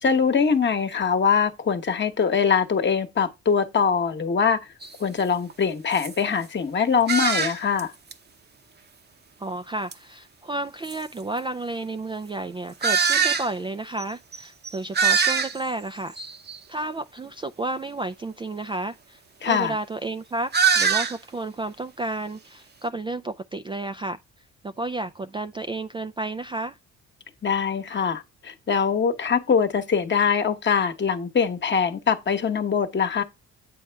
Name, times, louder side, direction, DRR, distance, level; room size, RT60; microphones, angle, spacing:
voice 1, 0.0-4.6 5.0-7.9 19.4-19.7 27.4-33.2, left 6 dB, 35° left, 1.1 m, -23 dB
sound 1, 4.8-4.9 5.5-5.6 5.9-6.1 7.1-7.8 8.1-8.2 9.9-10.0 10.8-10.9 12.8-13.5 14.0-14.1 14.3-14.4 14.6-15.7 16.2-16.6 20.5-21.2, right 6 dB, 35° right, 0.8 m, -22 dB
voice 2, 9.4-16.2 16.7-24.2 24.6-26.8, right 2 dB, 15° right, 0.3 m, -32 dB
8.5 x 4.2 x 3.4 m
cardioid pair, 90°, 30 cm